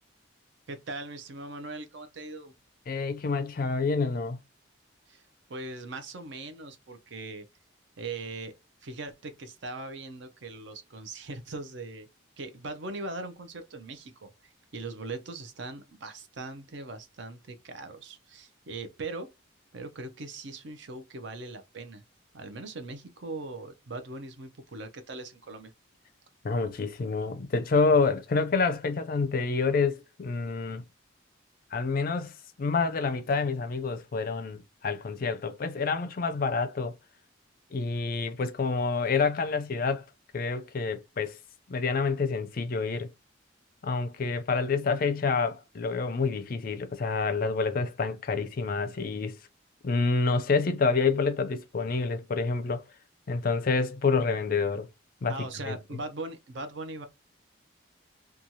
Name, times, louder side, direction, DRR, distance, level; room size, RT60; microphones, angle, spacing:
voice 1, 0.7-2.5 5.1-5.2 5.5-7.5 8.0-8.5 8.8-12.1 12.4-19.3 19.7-22.0 22.3-25.7 55.3-57.1, right 3 dB, 60° right, 0.5 m, -40 dB
voice 2, 2.9-4.4 26.4-30.8 31.7-36.9 37.7-40.0 40.3-41.4 41.7-43.1 43.8-49.4 49.8-52.8 53.3-54.9 55.2-55.8, left 4 dB, 45° left, 0.4 m, -28 dB
3.0 x 2.3 x 2.6 m
head